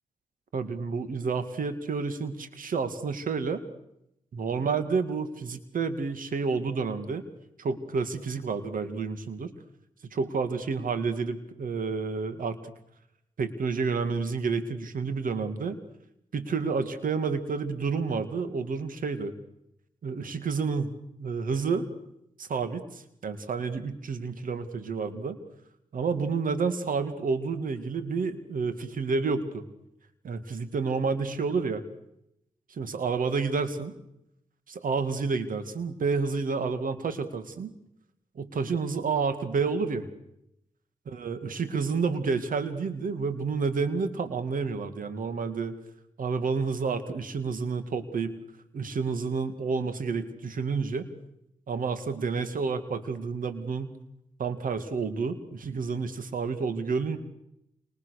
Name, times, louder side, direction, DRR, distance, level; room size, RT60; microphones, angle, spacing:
voice 1, 0.5-3.6 4.3-7.2 7.6-9.5 10.1-12.7 13.4-15.8 16.3-19.3 20.0-20.9 21.2-21.9 22.4-25.4 25.9-29.6 30.2-31.8 32.7-33.9 34.7-37.7 38.4-40.1 41.1-45.8 46.2-48.3 48.7-51.1 51.7-53.9 54.4-57.2, right 4 dB, 80° right, 11 dB, 2.4 m, -30 dB
28.5 x 28.0 x 6.7 m, 0.82 s
cardioid pair, 45°, 14 cm